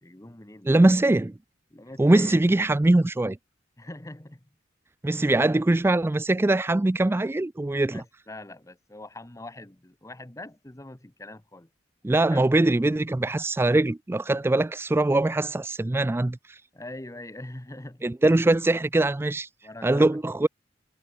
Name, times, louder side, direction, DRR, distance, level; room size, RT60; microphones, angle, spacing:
voice 1, 0.0-0.8 1.7-2.4 3.8-4.5 5.0-5.4 7.9-11.7 12.1-12.4 16.7-18.5 19.6-20.1, left 1 dB, 15° left, 1.1 m, -43 dB
voice 2, 0.7-1.3 2.0-3.4 5.0-8.0 12.0-16.6 18.0-19.5 19.8-20.5, right 2 dB, 10° right, 0.3 m, -22 dB
head